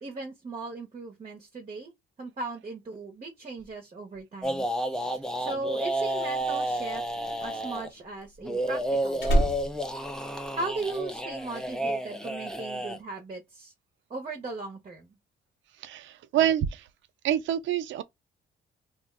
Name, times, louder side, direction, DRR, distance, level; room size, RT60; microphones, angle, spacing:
voice 1, 0.0-1.9 2.2-4.7 5.4-7.0 7.4-9.5 10.5-13.7 14.1-15.2, right 3 dB, 30° right, 0.8 m, -37 dB
sound 1, 4.4-7.9 8.4-13.0, right 1 dB, 5° left, 0.4 m, -31 dB
Slam, 6.9-11.0 11.3-11.7, right 1 dB, 65° left, 1.1 m, -30 dB
voice 2, 15.8-16.9 17.2-18.0, right 11 dB, 70° right, 0.4 m, -26 dB
2.4 x 2.1 x 3.5 m
cardioid pair, 90°, 20 cm